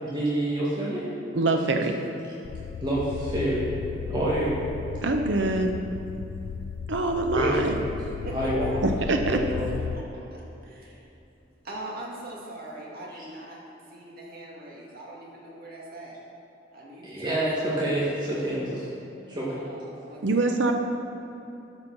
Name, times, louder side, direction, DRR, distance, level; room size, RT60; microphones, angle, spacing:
voice 1, 0.0-1.2 1.7-1.9 2.8-3.7 4.1-4.6 7.3-7.9 8.3-8.8 9.3-9.7 13.1-13.2 17.0-17.5 17.8-18.9 19.3-19.6, right 1 dB, 25° right, -8 dB, 1.8 m, -28 dB
voice 2, 1.3-2.0 5.0-5.8 6.9-7.8 8.8-9.4 20.2-20.7, right 2 dB, 80° right, 4 dB, 0.7 m, -24 dB
sound 1, 2.4-10.0, left 6 dB, 90° left, 0.3 m, -35 dB
voice 3, 8.2-9.0 9.9-11.0 11.6-13.6 13.9-16.2 16.7-17.5 19.5-20.5, right 1 dB, 55° right, -3 dB, 2.2 m, -40 dB
13.0 x 5.5 x 6.1 m, 3.0 s
head